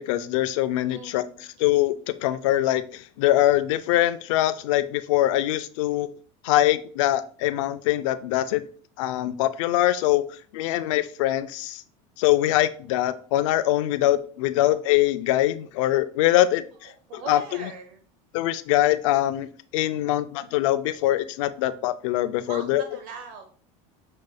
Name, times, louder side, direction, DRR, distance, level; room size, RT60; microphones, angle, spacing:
voice 1, 0.0-1.2 1.6-2.0 2.2-6.1 6.4-8.7 9.0-10.3 10.5-11.8 12.2-16.6 17.1-17.7 18.3-22.8, left 14 dB, 85° left, 13 dB, 0.4 m, -23 dB
voice 2, 0.9-1.4 16.8-18.0 22.5-23.4, right 5 dB, 70° right, 4 dB, 1.1 m, -40 dB
6.5 x 3.2 x 2.2 m, 0.43 s
supercardioid pair, 140°, 16 cm